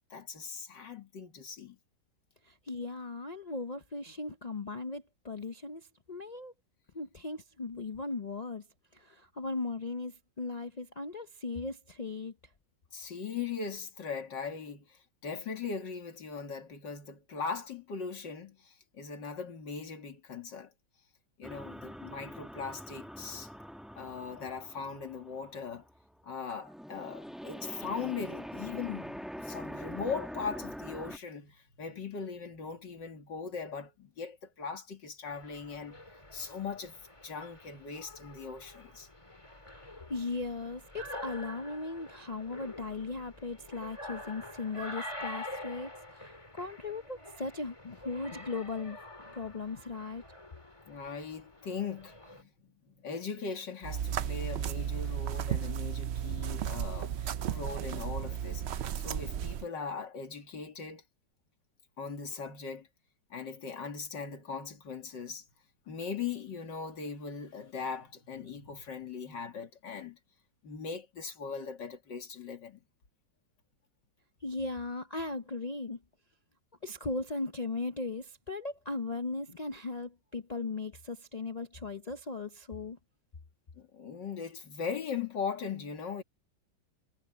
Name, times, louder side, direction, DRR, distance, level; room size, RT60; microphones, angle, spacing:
voice 1, 0.1-1.8 12.9-20.7 21.4-23.5 23.9-25.9 26.2-36.0 36.3-39.1 50.9-61.0 62.0-62.9 63.3-65.4 65.9-70.2 70.6-72.8 83.8-86.2, left 5 dB, 85° left, 3.0 m, -40 dB
voice 2, 2.5-6.5 6.9-8.6 8.9-12.3 39.9-49.0 49.2-50.2 74.4-76.0 76.8-83.0, left 3 dB, 60° left, 0.4 m, -38 dB
sound 1, 21.4-26.2 26.5-31.2, equal, ahead, 1.2 m, -44 dB
sound 2, 35.3-52.4, left 1 dB, 15° left, 2.7 m, -47 dB
sound 3, 53.8-59.6, right 9 dB, 75° right, 0.6 m, -34 dB
omnidirectional pair, 1.9 m